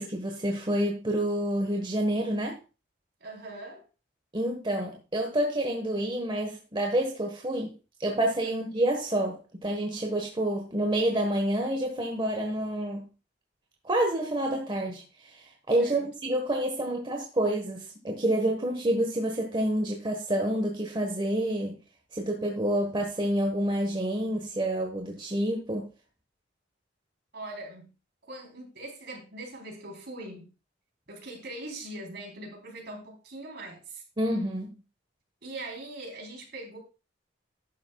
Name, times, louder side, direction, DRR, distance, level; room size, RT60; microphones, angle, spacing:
voice 1, 0.0-2.6 4.3-7.7 8.0-13.1 13.8-21.8 22.1-25.9 34.2-34.7, right 1 dB, 25° right, 1 dB, 1.4 m, -28 dB
voice 2, 3.2-3.8 8.4-8.5 15.8-16.1 27.3-27.9 28.3-30.5 31.1-34.0 35.4-36.8, right 2 dB, 60° right, 1 dB, 3.9 m, -41 dB
12.5 x 10.0 x 2.4 m, 0.31 s
head